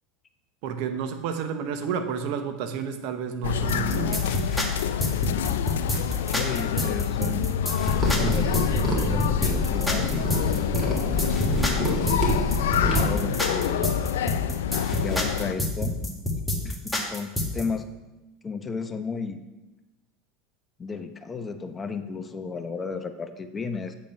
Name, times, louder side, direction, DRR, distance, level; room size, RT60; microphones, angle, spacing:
voice 1, 0.6-4.3, right 7 dB, 65° right, 8 dB, 0.9 m, -30 dB
sound 1, 3.4-15.5, left 9 dB, 80° left, 0.4 m, -27 dB
sound 2, 3.7-17.6, left 1 dB, 5° left, 1.7 m, -28 dB
voice 2, 6.3-7.5 8.2-10.3 11.4-12.3 12.9-13.9 15.0-15.9 16.6-17.9 18.4-19.4 20.8-23.9, left 5 dB, 25° left, 8 dB, 0.8 m, -34 dB
sound 3, 7.8-13.1, left 1 dB, 25° right, 3.0 m, -27 dB
8.7 x 5.3 x 5.7 m, 1.0 s
hypercardioid pair, 95°, 0 cm